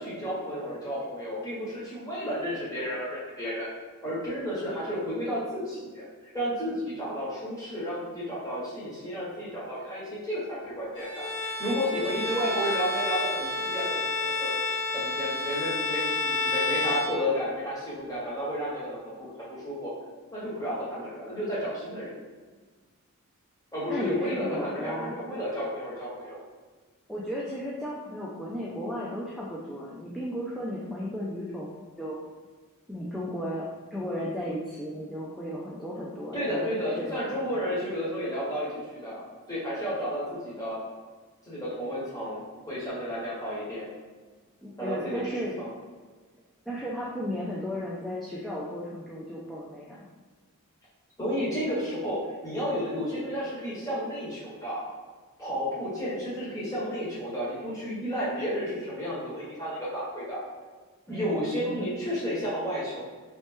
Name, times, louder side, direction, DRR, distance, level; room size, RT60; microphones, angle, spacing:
voice 1, 0.0-3.7 4.0-14.5 14.9-19.9 20.3-22.1 23.7-26.4 36.3-40.8 41.4-43.9 44.8-45.7 51.2-52.2 52.4-54.8 55.4-60.4 61.1-63.0, equal, 15° left, -8 dB, 1.2 m, -32 dB
Bowed string instrument, 10.9-17.7, left 3 dB, 55° left, 0.9 m, -30 dB
voice 2, 23.9-25.1 27.1-32.2 32.9-37.7 44.6-45.6 46.7-50.1 61.1-61.9, equal, ahead, -6 dB, 0.3 m, -35 dB
3.1 x 2.8 x 3.5 m, 1.4 s
head